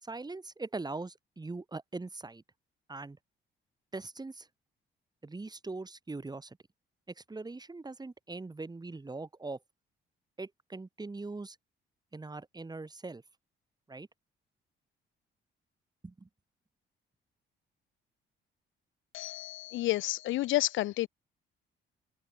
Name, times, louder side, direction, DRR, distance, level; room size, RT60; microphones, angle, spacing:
voice 1, 0.0-2.4 2.9-3.2 3.9-4.5 5.2-6.6 7.2-9.6 10.4-11.6 12.1-13.2 13.9-14.1 16.0-16.3, right 3 dB, 20° right, 3.0 m, -41 dB
voice 2, 19.1-21.1, left 16 dB, 80° left, 0.6 m, -30 dB
cardioid pair, 90°, 20 cm